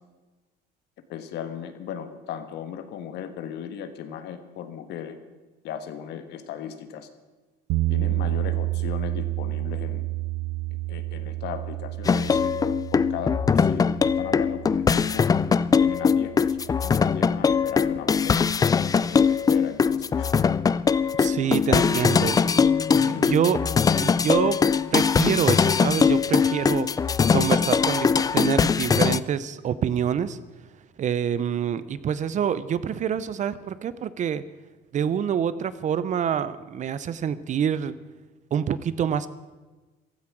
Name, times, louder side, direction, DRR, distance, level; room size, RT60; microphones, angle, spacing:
voice 1, 1.1-5.2 5.6-7.1 7.9-10.1 10.9-12.6 12.9-13.9 14.2-15.2 15.8-18.5 19.0-20.3 21.2-22.1 23.0-23.3, left 9 dB, 70° left, 9 dB, 1.5 m, -36 dB
sound 1, 7.7-17.7, right 19 dB, 80° right, 0.4 m, -31 dB
sound 2, 12.0-29.2, left 6 dB, 20° left, 0.4 m, -21 dB
voice 2, 21.2-22.4 22.9-23.6 24.0-24.6 24.9-26.9 27.3-30.4 31.0-34.4 34.9-38.0 38.5-39.3, right 8 dB, 40° right, 15 dB, 0.7 m, -26 dB
15.5 x 13.0 x 6.1 m, 1.2 s
cardioid pair, 115°, 18 cm